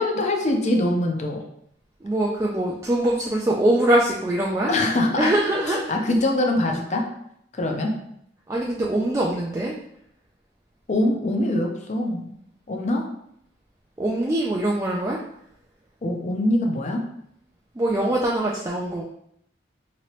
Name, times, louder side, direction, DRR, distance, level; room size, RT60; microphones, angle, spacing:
voice 1, 0.0-1.4 4.7-5.3 5.7-7.1 7.6-7.9 10.9-12.3 12.7-13.0 16.0-17.0, left 1 dB, 40° left, 2 dB, 0.5 m, -23 dB
voice 2, 2.0-4.7 5.2-5.9 7.9-8.0 8.5-9.8 14.0-15.2 17.8-19.0, right 1 dB, 15° right, -4 dB, 0.3 m, -23 dB
3.0 x 2.9 x 2.9 m, 0.72 s
head